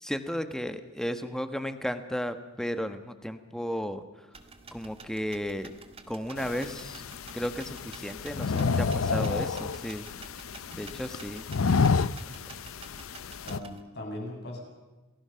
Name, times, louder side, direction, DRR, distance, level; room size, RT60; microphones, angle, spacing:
voice 1, 0.0-4.0 4.7-5.7 6.1-7.0 7.3-8.5 9.1-10.1 10.8-11.5, equal, 5° left, 8 dB, 1.4 m, -34 dB
sound 1, 4.3-13.8, right 4 dB, 30° right, 1.8 m, -50 dB
sound 2, 6.4-13.6, left 5 dB, 75° left, 0.6 m, -30 dB
voice 2, 8.5-8.9 10.7-10.8 13.4-14.6, left 1 dB, 55° left, 1 dB, 7.2 m, -39 dB
28.5 x 20.0 x 5.9 m, 1.2 s
head